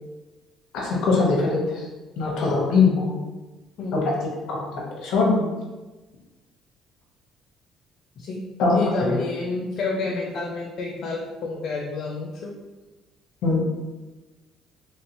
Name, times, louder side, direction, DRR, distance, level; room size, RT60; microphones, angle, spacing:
voice 1, 0.7-1.8 2.2-3.2 3.9-4.1 4.5-4.7 5.0-5.5 8.6-9.2 13.4-13.6, left 4 dB, 75° left, -2 dB, 0.9 m, -21 dB
voice 2, 8.7-12.5, left 3 dB, 55° left, -2 dB, 0.4 m, -29 dB
3.0 x 2.8 x 3.0 m, 1.2 s
cardioid pair, 125°, 0 cm